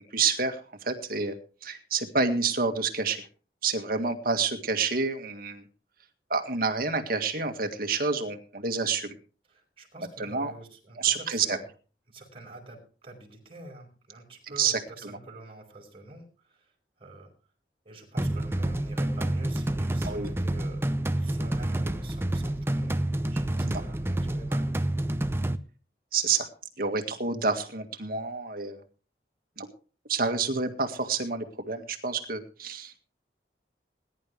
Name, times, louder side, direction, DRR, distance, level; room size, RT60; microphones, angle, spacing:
voice 1, 0.1-1.4 1.6-3.3 3.6-5.6 6.3-9.2 10.2-10.5 11.0-11.6 14.6-14.8 20.0-20.3 23.6-23.8 26.1-26.5 26.8-28.8 29.6-29.7 30.1-32.9, right 4 dB, 55° right, 6 dB, 1.9 m, -28 dB
voice 2, 9.5-11.7 12.1-16.7 17.0-17.3 17.8-23.0 23.3-25.0, right 2 dB, 35° right, 0 dB, 4.9 m, -47 dB
sound 1, 18.2-25.6, right 1 dB, 15° right, 0.7 m, -28 dB
20.5 x 11.0 x 3.3 m, 0.37 s
head